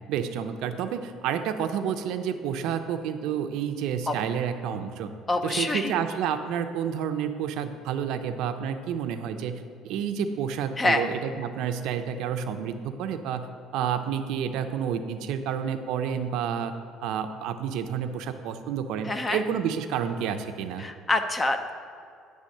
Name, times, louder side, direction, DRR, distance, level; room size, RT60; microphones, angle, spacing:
voice 1, 0.1-5.1 5.4-13.5 13.7-16.7 17.0-20.8, right 8 dB, 70° right, 8 dB, 0.5 m, -30 dB
voice 2, 5.3-5.9 10.8-11.0 19.0-19.4 20.8-21.7, left 2 dB, 15° left, 7 dB, 0.4 m, -26 dB
9.7 x 3.4 x 6.5 m, 2.4 s
cardioid pair, 160°, 0 cm